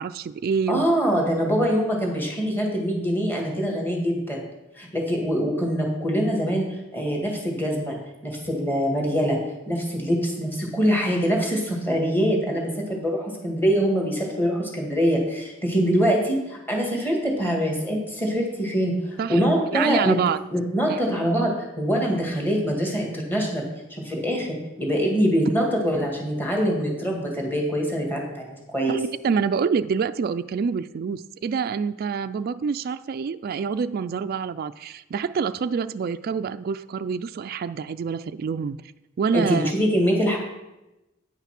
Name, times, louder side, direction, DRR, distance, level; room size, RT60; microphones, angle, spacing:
voice 1, 0.0-0.9 19.2-19.4 19.7-20.4 20.9-21.0 28.9-38.8 39.2-39.7, right 6 dB, 50° right, 11 dB, 0.3 m, -26 dB
voice 2, 0.7-4.4 4.8-6.7 6.9-7.9 8.2-9.4 9.7-20.2 20.5-23.6 23.9-29.0 39.3-40.4, equal, 10° left, 0 dB, 2.0 m, -24 dB
9.5 x 5.7 x 5.9 m, 0.96 s
head